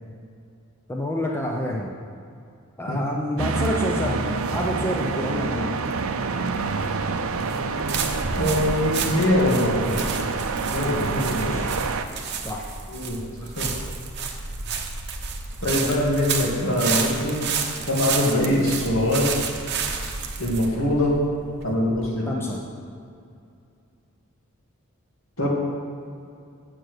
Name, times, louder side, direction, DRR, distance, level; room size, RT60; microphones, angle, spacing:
voice 1, 0.9-1.9 2.8-5.7 11.2-11.7 12.4-12.7 22.3-22.7, left 1 dB, 10° left, -1 dB, 0.6 m, -28 dB
sound 1, 3.4-12.0, right 4 dB, 70° right, 0.6 m, -27 dB
sound 2, 6.5-22.1, right 5 dB, 50° right, 0.9 m, -31 dB
voice 2, 8.3-10.0 10.7-11.6 12.9-13.7 15.6-17.4 17.8-19.3 20.4-21.1 21.6-22.3 25.4-25.5, left 1 dB, 65° left, -4 dB, 2.5 m, -23 dB
7.7 x 6.8 x 8.2 m, 2.5 s
head